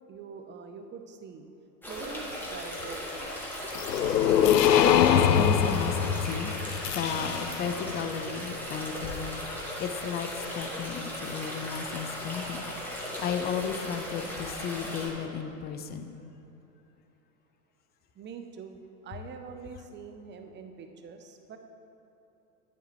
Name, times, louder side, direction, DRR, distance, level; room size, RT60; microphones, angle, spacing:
voice 1, 0.1-1.5 1.9-3.3 18.2-21.6, right 5 dB, 20° right, 6 dB, 0.7 m, -44 dB
sound 1, 1.8-15.1, left 1 dB, 5° left, 1.8 m, -37 dB
sound 2, 3.7-7.8, left 9 dB, 80° left, 0.6 m, -24 dB
voice 2, 4.6-6.5 6.9-9.4 9.8-16.1, left 7 dB, 20° left, 8 dB, 0.5 m, -33 dB
11.0 x 9.1 x 3.1 m, 3.0 s
figure-of-eight pair, 85°, 49 cm